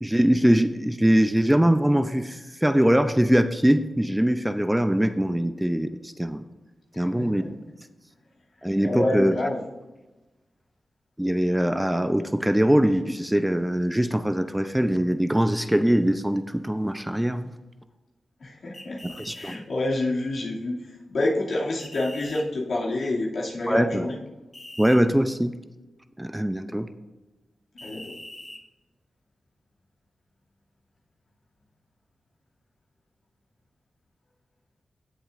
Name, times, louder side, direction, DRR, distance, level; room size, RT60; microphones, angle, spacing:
voice 1, 0.0-6.4 7.0-7.4 8.6-9.4 11.2-17.5 19.0-19.6 23.7-24.1 24.8-25.5 26.2-26.9, equal, 10° right, 10 dB, 0.6 m, -22 dB
voice 2, 6.9-7.5 8.8-9.6 18.4-24.2 27.8-28.1, left 2 dB, 70° left, -4 dB, 2.5 m, -28 dB
sound 1, 18.7-19.6 21.8-22.4 24.5-25.0 27.8-28.6, left 1 dB, 30° left, 2.0 m, -42 dB
16.5 x 7.1 x 2.6 m, 1.1 s
supercardioid pair, 40°, 0 cm